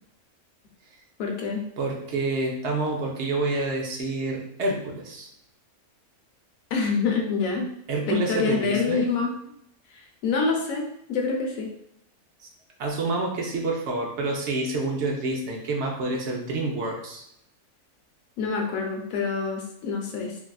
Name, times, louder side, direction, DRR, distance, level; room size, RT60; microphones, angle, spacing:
voice 1, 1.2-1.6 6.7-7.7 8.1-9.3 9.9-11.7 18.4-20.4, left 5 dB, 70° left, 1 dB, 1.0 m, -26 dB
voice 2, 1.8-5.3 7.9-9.1 12.4-12.5 12.8-17.2, right 2 dB, 60° right, 0 dB, 0.8 m, -28 dB
3.3 x 2.4 x 2.2 m, 0.73 s
omnidirectional pair, 1.5 m